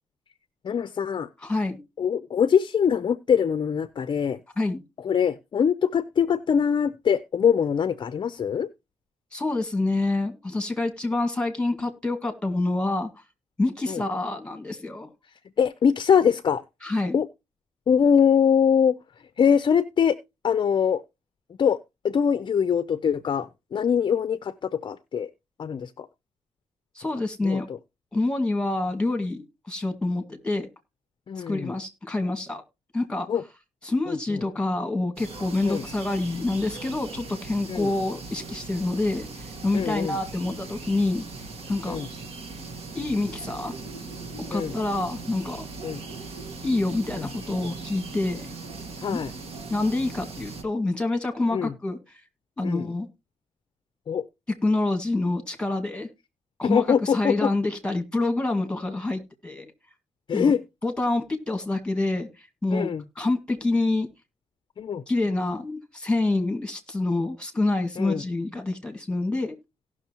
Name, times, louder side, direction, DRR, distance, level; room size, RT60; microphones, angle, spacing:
voice 1, 0.6-1.3 2.0-4.4 5.0-8.7 13.9-14.0 15.6-16.6 17.1-17.3 17.9-19.0 19.4-20.2 20.4-21.0 21.6-21.8 22.0-25.3 25.6-26.1 27.4-27.8 31.3-31.7 33.3-33.4 34.1-34.4 35.6-35.8 37.7-37.9 39.7-40.2 41.9-42.1 44.5-44.7 45.8-46.0 47.2-47.3 49.0-49.3 51.5-51.7 52.6-52.9 54.1-54.2 56.6-57.5 60.3-60.6 62.7-63.0 64.8-65.0 68.0-68.2, left 7 dB, 45° left, 0.5 m, -23 dB
voice 2, 1.4-1.8 4.6-4.8 9.3-13.1 13.6-15.1 16.8-17.2 27.0-27.7 28.1-30.7 31.4-32.6 32.9-33.3 33.8-41.2 41.7-42.0 42.9-43.7 44.4-45.7 46.6-48.5 49.1-49.2 49.7-52.0 52.6-53.1 54.6-56.1 56.6-59.7 60.3-60.5 60.8-62.3 62.6-62.9 63.2-64.1 65.1-69.6, left 2 dB, 10° left, 1.9 m, -27 dB
sound 1, 35.2-50.6, right 3 dB, 55° right, 1.9 m, -39 dB
17.5 x 6.2 x 2.9 m
cardioid pair, 130°, 12 cm